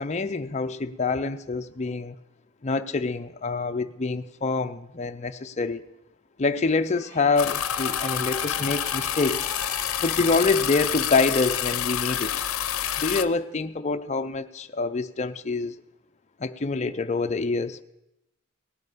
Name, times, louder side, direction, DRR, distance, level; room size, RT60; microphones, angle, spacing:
voice 1, 0.0-2.1 2.6-5.8 6.4-9.4 10.0-12.4 13.0-15.7 16.4-17.8, left 3 dB, 35° left, 8 dB, 0.6 m, -26 dB
sound 1, 6.9-12.7, right 1 dB, 30° right, 5.5 m, -42 dB
sound 2, 7.4-13.2, left 10 dB, 75° left, 0.7 m, -28 dB
18.0 x 11.0 x 5.1 m, 0.86 s
head